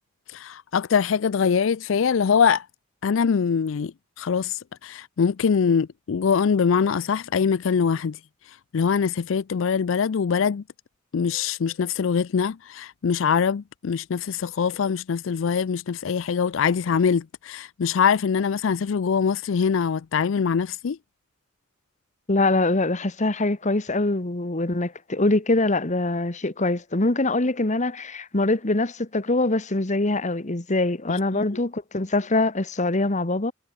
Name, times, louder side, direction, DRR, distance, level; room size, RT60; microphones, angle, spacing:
voice 1, 0.3-2.7 3.0-8.2 8.4-10.6 11.1-21.0 31.1-31.4, left 6 dB, 70° left, 0.4 m, -23 dB
voice 2, 22.3-33.5, left 2 dB, 35° left, 1.5 m, -23 dB
head